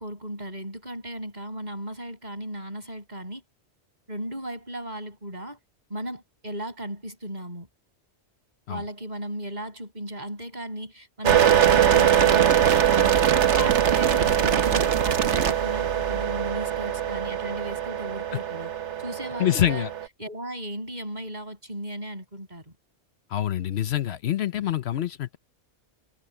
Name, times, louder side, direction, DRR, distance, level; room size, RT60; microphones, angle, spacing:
voice 1, 0.0-3.4 4.1-5.6 5.9-7.7 8.7-12.5 12.7-13.2 13.5-18.7 19.0-19.9 20.2-22.7, right 1 dB, 40° right, 7.9 m, -36 dB
sound 1, 11.2-20.0, right 9 dB, 90° right, 1.3 m, -22 dB
voice 2, 19.4-19.9 23.3-25.4, left 12 dB, 70° left, 0.9 m, -25 dB
omnidirectional pair, 1.1 m